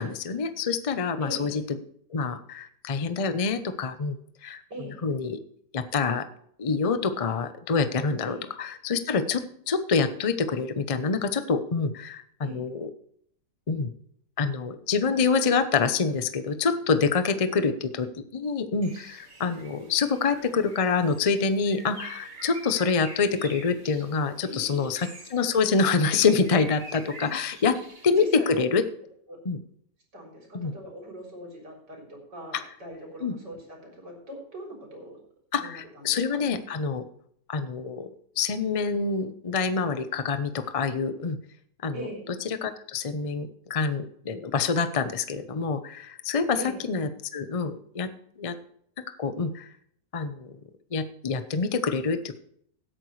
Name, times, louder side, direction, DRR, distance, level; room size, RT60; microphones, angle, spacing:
voice 1, 0.0-1.8 2.1-4.6 5.0-5.4 5.7-6.3 6.6-12.9 13.7-13.9 14.4-17.7 18.0-27.7 28.0-28.8 29.4-29.6 30.5-30.7 33.2-33.3 35.5-37.0 37.5-38.1 38.4-41.4 41.8-42.1 42.4-46.6 46.9-48.1 48.4-48.5 49.2-49.7 50.1-50.5 50.9-52.4, left 5 dB, 60° left, 10 dB, 0.3 m, -26 dB
voice 2, 1.2-1.6 4.7-5.0 8.2-8.4 12.4-12.6 17.5-17.7 24.4-24.9 27.2-27.3 28.2-28.6 29.3-29.4 30.1-35.2 35.6-36.5 41.9-42.2 46.5-46.8, right 1 dB, 65° right, -1 dB, 4.4 m, -41 dB
Bird, 18.8-28.4, right 2 dB, 35° right, 2.3 m, -46 dB
16.5 x 8.9 x 3.2 m, 0.66 s
omnidirectional pair, 2.0 m